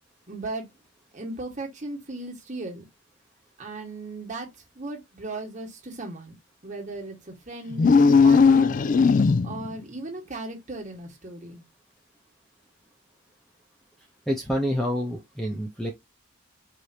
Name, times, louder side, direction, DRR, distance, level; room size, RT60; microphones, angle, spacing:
voice 1, 0.3-0.7 1.1-2.8 3.6-4.5 4.7-6.3 6.6-8.8 9.4-11.6, right 2 dB, 35° right, 1.7 m, -37 dB
sound 1, 7.7-9.7, left 5 dB, 40° left, 0.3 m, -17 dB
voice 2, 14.3-15.9, equal, ahead, 0.8 m, -27 dB
4.8 x 2.8 x 2.8 m
head